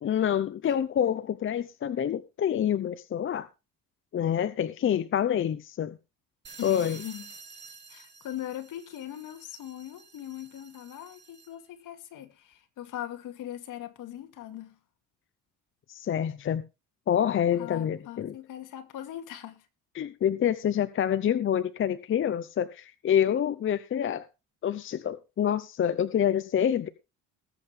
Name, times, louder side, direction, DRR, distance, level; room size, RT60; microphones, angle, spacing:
voice 1, 0.0-3.5 4.1-6.0 6.6-7.0 15.9-16.6 17.1-18.4 19.9-24.3 24.6-26.9, left 9 dB, 35° left, 0.7 m, -27 dB
sound 1, 6.4-11.7, right 5 dB, 30° right, 2.7 m, -50 dB
voice 2, 6.6-7.3 7.9-14.8 17.6-19.7, left 12 dB, 65° left, 2.4 m, -40 dB
20.0 x 7.7 x 3.4 m
cardioid pair, 115°, 34 cm